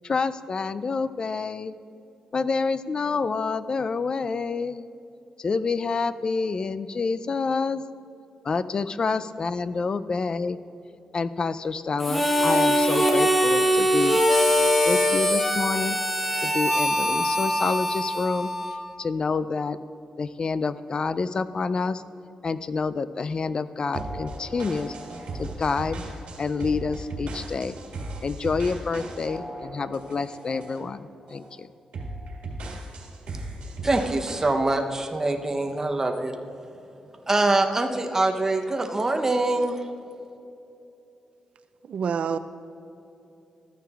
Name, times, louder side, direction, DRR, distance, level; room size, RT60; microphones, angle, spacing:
voice 1, 0.0-1.7 2.3-4.9 5.4-7.8 8.4-10.6 11.1-14.2 14.8-16.0 16.4-18.5 19.0-19.8 20.2-22.0 22.4-24.9 25.4-26.0 26.4-27.7 28.2-31.7, left 4 dB, 40° left, 14 dB, 0.3 m, -28 dB
Harmonica, 12.0-18.9, equal, 10° left, 1.0 m, -22 dB
sound 1, 23.9-30.9 31.3-31.5 31.9-34.5, right 2 dB, 85° right, 1.7 m, -37 dB
voice 2, 33.8-36.3 37.3-39.8, right 2 dB, 25° right, 3 dB, 0.7 m, -24 dB
voice 3, 41.8-42.4, right 6 dB, 70° right, 11 dB, 0.4 m, -27 dB
13.5 x 9.1 x 2.4 m, 2.9 s
cardioid pair, 95°, 2 cm